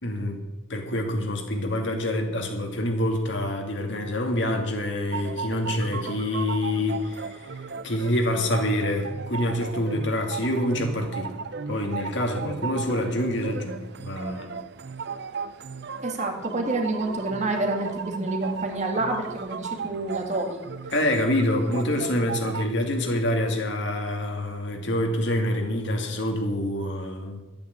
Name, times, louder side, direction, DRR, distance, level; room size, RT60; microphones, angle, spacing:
voice 1, 0.0-0.4 0.7-11.3 11.7-14.6 20.9-27.4, left 1 dB, 70° left, 3 dB, 2.5 m, -26 dB
sound 1, 5.1-22.6, right 5 dB, 60° right, 0.6 m, -36 dB
voice 2, 16.0-20.6, right 2 dB, 40° right, 3 dB, 1.9 m, -28 dB
12.0 x 8.7 x 8.3 m, 1.1 s
head